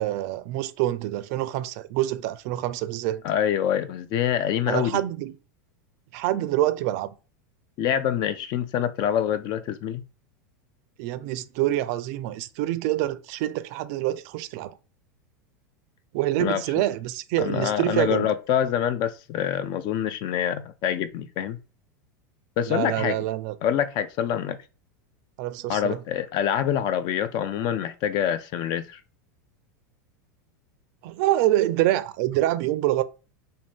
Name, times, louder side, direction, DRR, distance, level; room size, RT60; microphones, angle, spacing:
voice 1, 0.0-3.2 4.7-5.4 6.1-7.1 11.0-14.7 16.1-18.3 22.7-23.6 25.4-26.0 31.0-33.0, right 14 dB, 60° right, 0.4 m, -26 dB
voice 2, 3.2-5.0 7.8-10.0 16.4-16.6 17.4-21.6 22.6-23.2 23.6-24.6 25.7-29.0, left 9 dB, 45° left, 0.4 m, -26 dB
2.6 x 2.6 x 3.4 m
hypercardioid pair, 110°, 10 cm